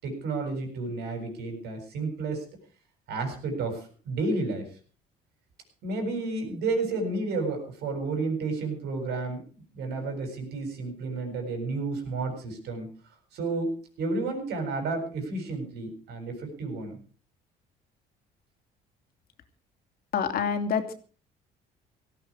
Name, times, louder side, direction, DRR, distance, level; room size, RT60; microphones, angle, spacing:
voice 1, 0.0-2.4 3.1-4.7 5.8-9.4 9.7-12.9 13.3-17.0, right 3 dB, 75° right, 5 dB, 7.5 m, -31 dB
voice 2, 20.1-20.9, left 6 dB, 60° left, 7 dB, 2.8 m, -27 dB
18.0 x 14.5 x 4.9 m, 0.40 s
cardioid pair, 110°, 17 cm